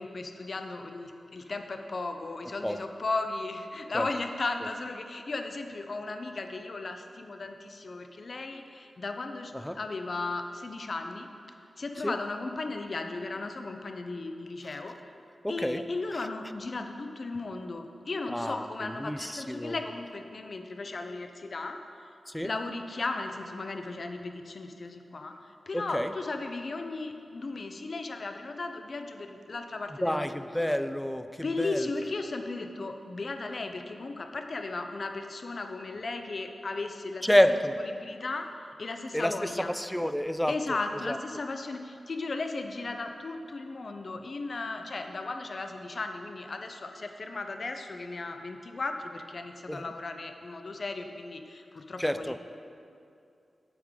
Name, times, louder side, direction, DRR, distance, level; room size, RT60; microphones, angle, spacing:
voice 1, 0.0-11.3 11.8-15.1 15.5-22.1 22.4-30.5 31.4-37.3 37.8-38.5 38.8-39.7 40.5-52.4, left 3 dB, 55° left, 6 dB, 0.6 m, -36 dB
voice 2, 15.4-15.8 18.3-19.8 22.3-22.5 25.7-26.1 30.0-31.3 31.6-31.9 37.2-37.7 39.1-40.6 41.1-41.2 49.7-49.8 52.0-52.4, equal, 5° left, 11 dB, 0.3 m, -28 dB
8.2 x 7.8 x 3.7 m, 2.6 s
wide cardioid pair, 75°, 0 cm